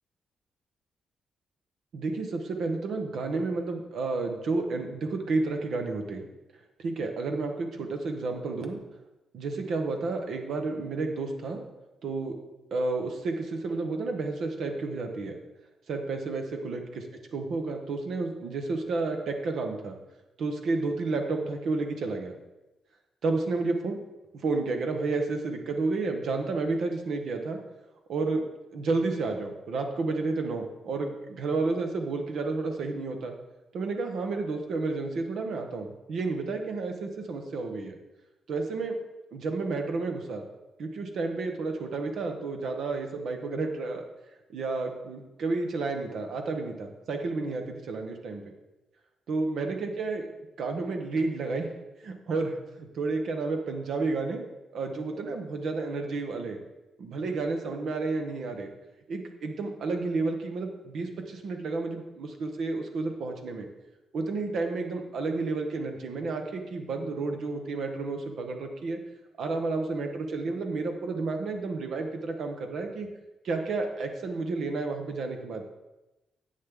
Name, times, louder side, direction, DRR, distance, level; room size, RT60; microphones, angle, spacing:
voice 1, 1.9-6.3 6.8-8.8 9.3-11.6 12.0-12.3 12.7-15.4 15.9-17.1 17.3-20.0 20.4-22.3 23.2-24.0 24.4-27.6 28.1-28.4 28.7-33.3 33.7-37.9 38.5-39.0 39.3-40.4 40.8-44.0 44.5-48.4 49.3-50.3 50.6-51.7 52.0-54.5 54.7-56.6 57.0-58.7 59.1-63.7 64.1-69.0 69.4-73.1 73.4-75.6, right 3 dB, 70° right, 4 dB, 1.3 m, -31 dB
10.5 x 7.7 x 3.8 m, 1.0 s
cardioid pair, 105°, 0 cm